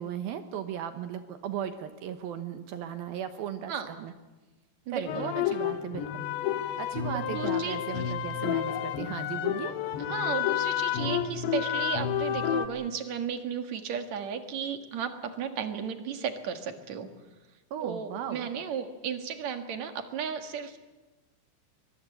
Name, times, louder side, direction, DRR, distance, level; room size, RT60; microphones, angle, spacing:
voice 1, 0.0-4.1 4.9-6.3 6.8-9.7 17.7-18.5, right 9 dB, 70° right, 8 dB, 2.6 m, -36 dB
voice 2, 4.9-5.3 7.1-7.8 10.0-17.1 17.8-20.8, right 7 dB, 55° right, 7 dB, 2.2 m, -34 dB
sound 1, 5.1-12.7, left 10 dB, 80° left, 3.4 m, -30 dB
23.0 x 21.0 x 8.5 m, 1.1 s
omnidirectional pair, 5.0 m